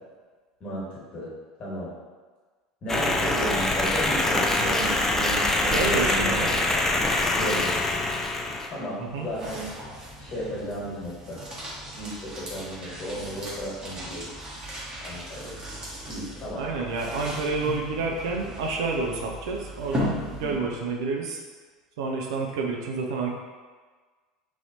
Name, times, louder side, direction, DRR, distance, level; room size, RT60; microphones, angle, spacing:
voice 1, 0.6-1.3 1.6-1.9 2.8-6.6 7.3-8.0 8.7-9.6 10.2-11.5 11.9-14.3 15.0-15.6 16.0-16.6 20.4-20.7, equal, 35° left, -6 dB, 1.3 m, -34 dB
sound 1, 2.9-8.7, left 2 dB, 15° left, 0.4 m, -24 dB
voice 2, 5.7-6.5 9.0-9.3 16.6-21.4 22.0-23.3, right 3 dB, 65° right, 0 dB, 0.4 m, -29 dB
sound 2, 8.8-20.9, equal, 30° right, 1.1 m, -37 dB
3.1 x 2.7 x 2.8 m, 1.4 s
figure-of-eight pair, 75°, 3 cm